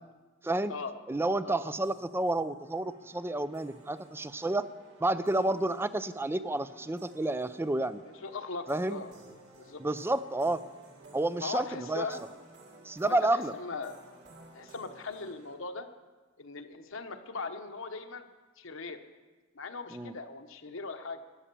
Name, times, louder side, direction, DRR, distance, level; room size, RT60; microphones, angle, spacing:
voice 1, 0.4-0.7 1.1-4.7 5.0-8.0 8.7-9.0 9.8-10.6 11.1-12.1 12.8-13.5 19.9-20.1, right 2 dB, 10° right, 14 dB, 0.4 m, -30 dB
sound 1, 1.8-15.5, right 2 dB, 55° right, 3.6 m, -55 dB
voice 2, 8.2-9.1 9.6-9.8 11.4-12.2 13.0-14.0 14.5-15.9 16.4-18.3 18.6-19.0 19.5-21.2, left 4 dB, 65° left, 7 dB, 1.0 m, -39 dB
14.5 x 10.0 x 6.9 m, 1.3 s
head